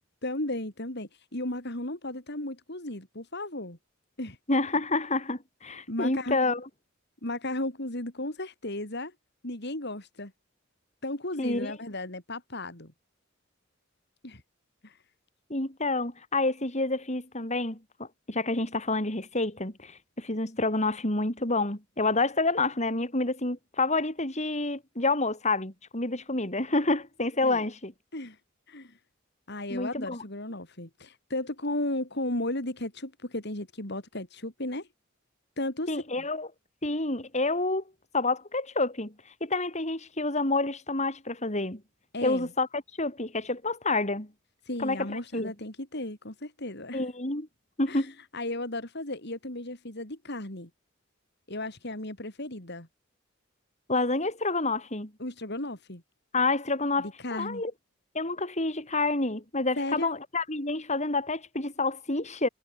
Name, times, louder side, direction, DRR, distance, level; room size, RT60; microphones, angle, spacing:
voice 1, 0.2-3.8 4.2-4.4 5.9-6.4 7.2-9.1 9.4-10.3 11.0-12.9 14.2-14.4 14.8-15.0 27.4-27.6 28.1-28.4 28.7-29.0 29.5-34.9 35.6-36.2 42.1-42.5 44.7-47.0 47.9-48.1 48.3-50.7 51.5-52.9 55.2-56.0 57.0-57.6 59.8-60.1, left 1 dB, 55° left, 5.4 m, -35 dB
voice 2, 4.5-6.6 11.4-11.7 15.5-27.9 29.7-30.2 35.9-36.5 36.8-37.8 38.1-39.1 39.4-41.8 42.2-44.3 44.8-45.5 46.9-47.5 47.8-48.1 53.9-55.1 56.3-57.7 58.1-62.5, left 2 dB, 35° left, 5.7 m, -28 dB
head